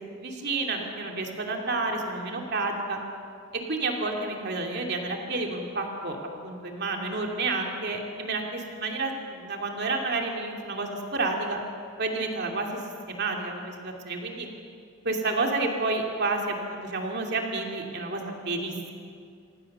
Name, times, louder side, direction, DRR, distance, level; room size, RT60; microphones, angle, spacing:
voice 1, 0.1-3.0 3.7-6.2 6.4-11.6 12.0-14.5 15.0-18.9, right 3 dB, 50° right, 1 dB, 2.8 m, -30 dB
26.5 x 18.0 x 6.8 m, 2.4 s
head